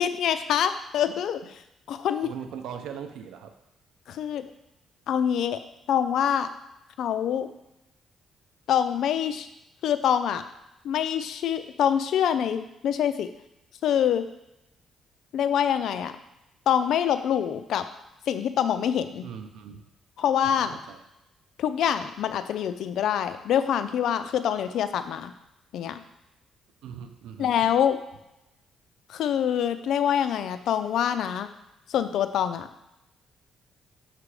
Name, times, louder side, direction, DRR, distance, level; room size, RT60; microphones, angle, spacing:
voice 1, 0.0-1.4 1.9-2.3 4.1-4.5 5.1-5.6 5.9-6.5 7.0-7.5 8.7-9.5 9.8-10.4 10.8-13.3 13.8-14.2 15.3-16.1 16.7-17.8 18.3-19.3 20.2-20.7 21.6-25.3 25.7-26.0 27.4-28.0 29.1-31.5 31.9-32.7, left 9 dB, 75° left, 10 dB, 0.4 m, -25 dB
voice 2, 2.2-3.5 19.2-19.8 20.4-21.0 24.7-24.8 26.8-27.5, right 8 dB, 85° right, 7 dB, 0.6 m, -40 dB
5.9 x 3.3 x 4.8 m, 0.89 s
cardioid pair, 90°, 0 cm